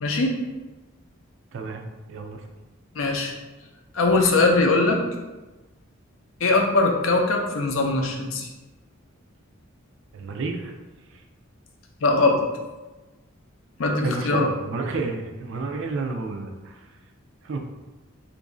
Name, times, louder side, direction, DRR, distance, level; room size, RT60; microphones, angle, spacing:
voice 1, 0.0-0.4 3.0-3.3 3.9-5.0 6.4-8.5 12.0-12.4 13.8-14.5, left 3 dB, 70° left, 2 dB, 0.5 m, -21 dB
voice 2, 2.1-2.4 10.1-10.7 14.0-16.7 17.4-17.6, right 3 dB, 65° right, 4 dB, 0.4 m, -30 dB
3.0 x 2.5 x 3.7 m, 1.1 s
head